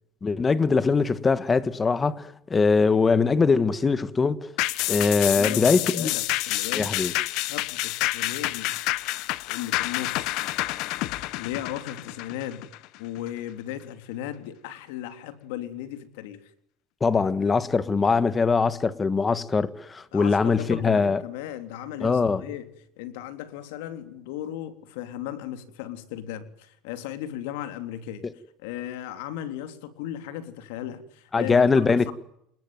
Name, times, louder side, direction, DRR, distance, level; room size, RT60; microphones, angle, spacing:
voice 1, 0.2-4.5 4.9-6.1 6.7-7.1 17.0-21.2 22.0-22.4 31.3-32.1, left 4 dB, 15° left, 1.6 m, -22 dB
sound 1, 4.6-13.3 13.7-13.8, left 19 dB, 60° left, 1.2 m, -28 dB
voice 2, 5.4-6.9 7.5-8.7 9.5-10.5 11.0-12.7 13.0-16.4 20.1-22.7 23.0-28.3 28.6-32.1, left 11 dB, 80° left, 3.6 m, -36 dB
28.5 x 21.0 x 9.5 m
cardioid pair, 150°, 0 cm